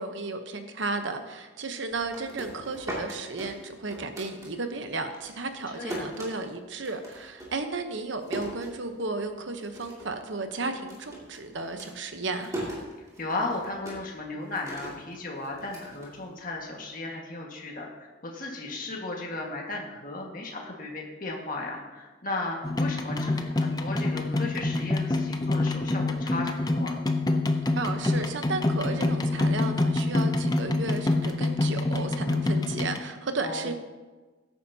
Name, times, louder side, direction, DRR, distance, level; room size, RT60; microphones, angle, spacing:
voice 1, 0.0-12.6 27.7-33.7, right 3 dB, 65° right, 7 dB, 1.0 m, -34 dB
sound 1, 1.9-4.9 5.1-9.3 9.6-10.2 10.5-16.7, right 1 dB, 15° right, 2.5 m, -40 dB
voice 2, 5.7-6.0 13.0-27.0 33.4-33.7, left 2 dB, 40° left, -1 dB, 1.7 m, -35 dB
sound 2, 22.6-33.0, left 2 dB, 20° left, 0.5 m, -26 dB
16.5 x 9.2 x 2.8 m, 1.3 s
head